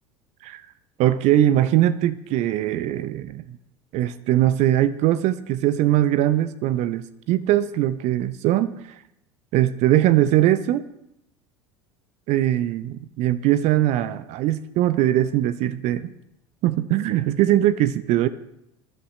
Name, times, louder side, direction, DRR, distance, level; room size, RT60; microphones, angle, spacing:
voice 1, 1.0-3.6 3.9-9.0 9.5-10.9 12.3-16.1 16.6-18.3, right 13 dB, 45° right, 14 dB, 0.5 m, -21 dB
21.5 x 11.5 x 3.2 m, 0.81 s
figure-of-eight pair, 70°, 16 cm